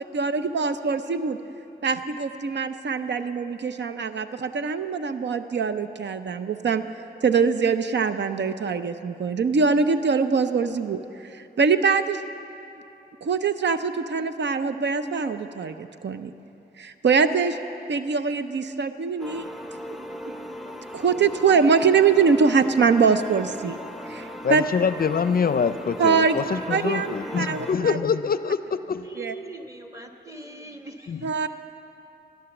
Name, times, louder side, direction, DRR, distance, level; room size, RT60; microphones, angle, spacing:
voice 1, 0.0-1.4 1.8-6.9 7.2-12.2 13.2-16.3 16.8-17.6 17.9-19.5 19.9-20.0 20.9-23.8 24.0-24.6 26.0-26.4 26.7-28.0 29.2-29.3 31.2-31.5, right 5 dB, 80° right, 10 dB, 0.6 m, -23 dB
sound 1, 19.2-27.7, equal, ahead, 0.6 m, -38 dB
voice 2, 24.4-29.1 31.1-31.3, left 6 dB, 55° left, 13 dB, 0.4 m, -25 dB
voice 3, 29.0-31.5, right 2 dB, 15° right, 4 dB, 1.2 m, -41 dB
15.5 x 10.5 x 7.1 m, 2.9 s
wide cardioid pair, 90°, 18 cm